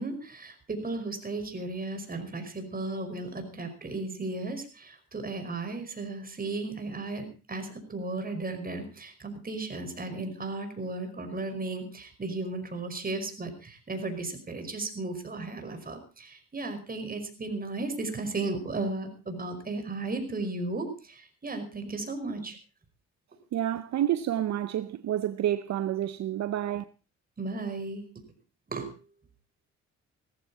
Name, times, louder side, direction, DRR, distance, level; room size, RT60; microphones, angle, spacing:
voice 1, 0.0-22.6 27.4-28.0 28.7-28.9, right 2 dB, 30° right, 5.2 m, -35 dB
voice 2, 23.5-26.8, right 11 dB, 65° right, 0.7 m, -29 dB
18.0 x 14.5 x 4.1 m
cardioid pair, 90°, 30 cm